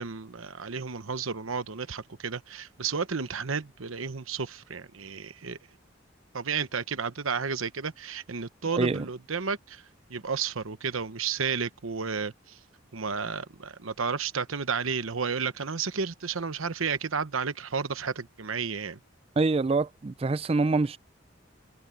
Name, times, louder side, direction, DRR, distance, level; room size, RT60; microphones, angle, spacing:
voice 1, 0.0-5.6 6.3-9.8 10.1-12.6 12.9-19.0, right 5 dB, 90° right, 1.0 m, -32 dB
voice 2, 8.7-9.1 19.4-21.0, right 3 dB, 30° right, 0.4 m, -25 dB
head